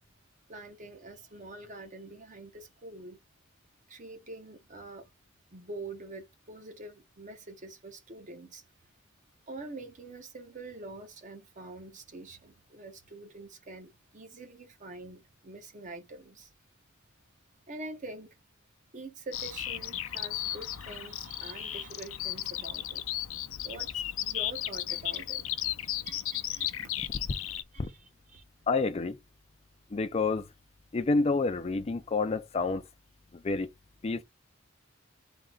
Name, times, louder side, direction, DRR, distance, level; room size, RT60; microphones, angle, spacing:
voice 1, 0.5-3.2 3.9-5.1 5.5-8.6 9.5-16.5 17.7-18.4 18.9-23.0 23.6-25.5 26.0-26.9 27.7-28.4, right 2 dB, 40° right, 0.9 m, -45 dB
Bird vocalization bird call bird song, 19.3-27.6, left 12 dB, 85° left, 0.6 m, -35 dB
voice 2, 28.7-29.2 29.9-30.5 30.9-32.8 33.3-33.7 34.0-34.2, left 3 dB, 30° left, 0.4 m, -28 dB
3.9 x 2.9 x 3.7 m
head